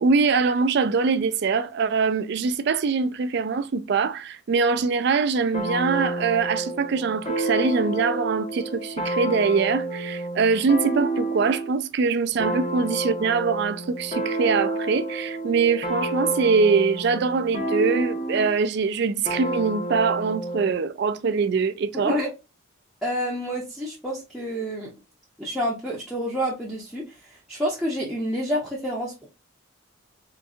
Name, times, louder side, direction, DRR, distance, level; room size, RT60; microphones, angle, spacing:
voice 1, 0.0-22.2, right 5 dB, 50° right, 0.3 m, -23 dB
sound 1, 5.5-11.8 12.4-18.6 19.3-20.7, right 2 dB, 30° left, 0.7 m, -29 dB
voice 2, 21.9-22.3 23.0-24.9 25.4-29.3, equal, ahead, 0.6 m, -28 dB
3.7 x 2.6 x 2.3 m
head